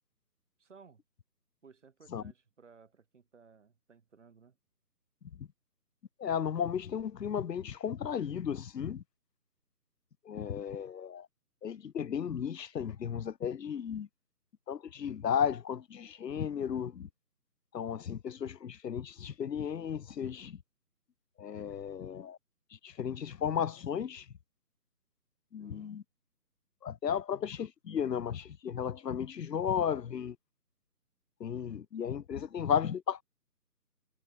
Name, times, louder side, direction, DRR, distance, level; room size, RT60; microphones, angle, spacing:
voice 1, 0.6-1.0 1.6-4.6 25.6-26.0, right 5 dB, 45° right, 6.2 m, -59 dB
voice 2, 6.2-9.0 10.3-11.3 11.6-14.1 14.7-17.1 17.7-20.6 21.4-22.4 22.8-24.3 25.5-26.0 26.8-30.4 31.4-33.2, left 8 dB, 90° left, 0.7 m, -34 dB
figure-of-eight pair, 160°, 48 cm